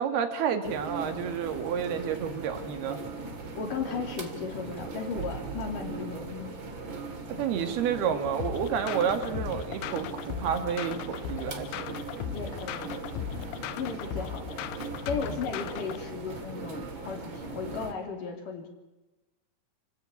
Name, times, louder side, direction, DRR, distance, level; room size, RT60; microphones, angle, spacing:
voice 1, 0.0-3.0 7.4-12.0, right 7 dB, 75° right, 8 dB, 4.0 m, -30 dB
sound 1, 0.6-17.9, right 3 dB, 35° right, 2.9 m, -39 dB
voice 2, 3.3-6.5 12.3-12.9 13.8-14.6 15.1-18.7, left 5 dB, 55° left, 4 dB, 4.9 m, -36 dB
sound 2, 8.4-16.0, left 10 dB, 85° left, 3.0 m, -37 dB
29.0 x 17.0 x 8.6 m, 1.1 s
omnidirectional pair, 4.5 m